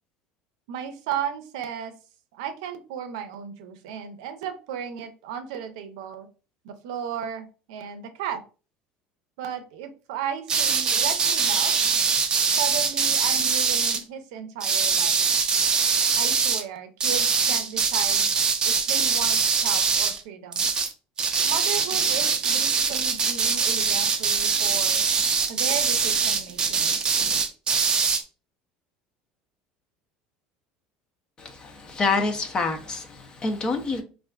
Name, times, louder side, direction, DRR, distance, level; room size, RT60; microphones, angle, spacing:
voice 1, 0.7-1.9 2.3-6.3 6.6-8.4 9.4-11.7 12.6-15.2 16.2-18.3 18.6-20.7 21.5-25.1 25.5-27.0, right 8 dB, 90° right, 0.5 m, -35 dB
sound 1, 10.5-14.0 14.6-16.6 17.0-20.2 20.5-20.9 21.2-28.2, right 5 dB, 30° right, 0.4 m, -23 dB
voice 2, 31.4-34.0, left 3 dB, 25° left, 0.5 m, -27 dB
3.3 x 2.4 x 2.3 m
supercardioid pair, 125°, 3 cm